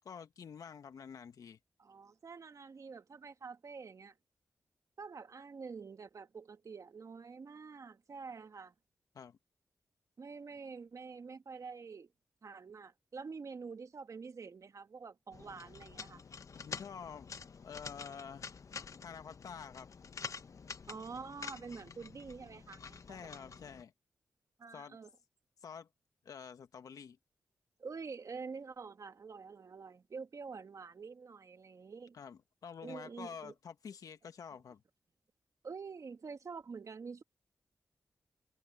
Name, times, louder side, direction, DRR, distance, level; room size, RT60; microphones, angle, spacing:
voice 1, 0.1-1.6 9.2-9.4 16.5-17.3 17.6-18.5 19.0-19.9 23.1-23.9 24.7-25.0 25.6-25.9 26.3-27.2 32.1-34.8, left 7 dB, 75° left, 1.6 m, -48 dB
voice 2, 1.8-4.1 5.0-8.7 10.2-12.1 12.4-16.2 20.9-23.7 24.6-25.1 27.8-32.2 32.8-33.5 35.6-37.2, right 5 dB, 60° right, 1.9 m, -47 dB
sound 1, 15.3-23.8, left 5 dB, 60° left, 1.1 m, -48 dB
supercardioid pair, 40°, 6 cm